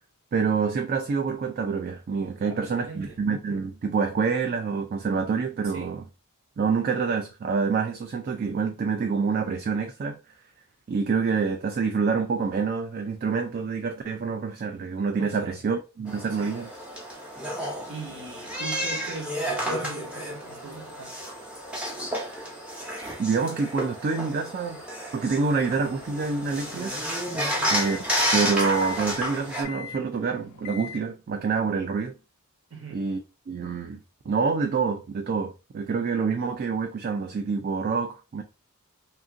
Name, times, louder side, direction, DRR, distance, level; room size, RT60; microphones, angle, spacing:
voice 1, 0.3-6.0 6.6-10.2 10.9-16.7 22.0-22.5 23.2-24.8 25.1-27.0 27.7-28.0 28.3-32.1 32.9-33.2 33.5-34.0 34.3-38.4, right 5 dB, 40° right, 0.3 m, -27 dB
voice 2, 2.4-3.2 5.6-6.0 15.2-15.6 16.3-16.6 17.9-21.2 27.4-27.7 32.7-33.0, right 3 dB, 65° right, 1.1 m, -40 dB
sound 1, 16.1-29.6, equal, 5° right, 0.6 m, -31 dB
sound 2, 25.6-31.0, left 8 dB, 85° left, 0.3 m, -43 dB
2.8 x 2.5 x 2.5 m
head